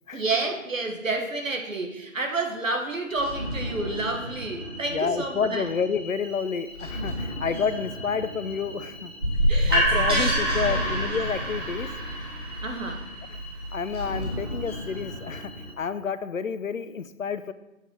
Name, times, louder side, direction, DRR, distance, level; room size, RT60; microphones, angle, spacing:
voice 1, 0.1-5.7 9.5-10.4 10.7-10.9 12.6-13.0, right 2 dB, 65° right, 3 dB, 1.6 m, -30 dB
sound 1, 3.1-15.7, equal, 5° left, 1.3 m, -37 dB
voice 2, 4.9-9.1 9.7-11.9 13.3-13.4 13.7-15.5 15.8-17.5, left 6 dB, 70° left, 13 dB, 0.6 m, -29 dB
sound 2, 9.2-15.0, equal, 15° right, 1.2 m, -26 dB
7.4 x 4.6 x 5.5 m, 0.94 s
figure-of-eight pair, 160°, 42 cm